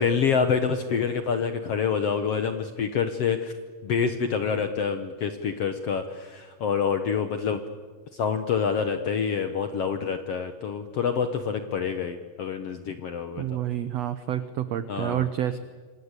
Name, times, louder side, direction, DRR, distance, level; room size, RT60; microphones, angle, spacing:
voice 1, 0.0-3.5 3.8-7.6 8.1-13.4 14.9-15.3, left 6 dB, 65° left, 8 dB, 1.6 m, -27 dB
voice 2, 13.4-15.6, right 11 dB, 80° right, 12 dB, 1.4 m, -28 dB
27.0 x 25.5 x 8.3 m, 1.5 s
omnidirectional pair, 4.2 m